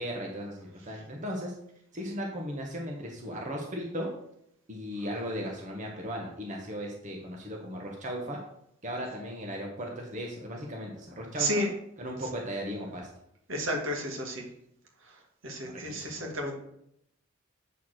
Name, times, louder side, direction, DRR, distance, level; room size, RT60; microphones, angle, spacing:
voice 1, 0.0-1.5 1.9-4.1 4.7-8.4 8.8-11.7 12.0-13.1 15.6-16.2, equal, 40° right, 0 dB, 1.3 m, -36 dB
voice 2, 11.4-11.7 13.5-14.5 15.4-16.5, right 1 dB, 75° right, 1 dB, 2.1 m, -31 dB
8.1 x 4.6 x 6.4 m, 0.76 s
head